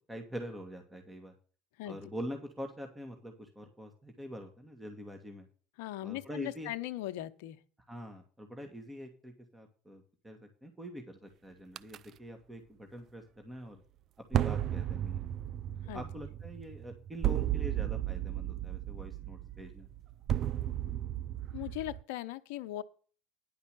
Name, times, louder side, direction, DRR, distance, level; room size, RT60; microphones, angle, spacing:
voice 1, 0.1-1.3 1.8-5.5 6.0-6.8 7.9-13.8 14.3-15.2 15.9-19.9, equal, 15° right, 2.1 m, -45 dB
voice 2, 5.8-7.6 15.9-16.0 21.5-22.8, left 15 dB, 80° left, 0.8 m, -39 dB
sound 1, 11.8-12.0 14.3-22.0, right 11 dB, 50° right, 0.4 m, -34 dB
10.5 x 5.4 x 7.6 m
hypercardioid pair, 85°, 0 cm